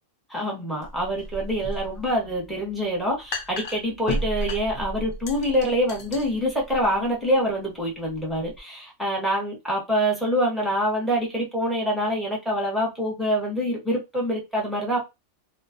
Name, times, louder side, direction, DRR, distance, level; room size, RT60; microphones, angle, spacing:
voice 1, 0.3-15.0, equal, ahead, -3 dB, 0.7 m, -25 dB
sound 1, 0.8-8.6, equal, 75° left, 0.4 m, -35 dB
2.4 x 2.1 x 2.5 m, 0.22 s
omnidirectional pair, 1.4 m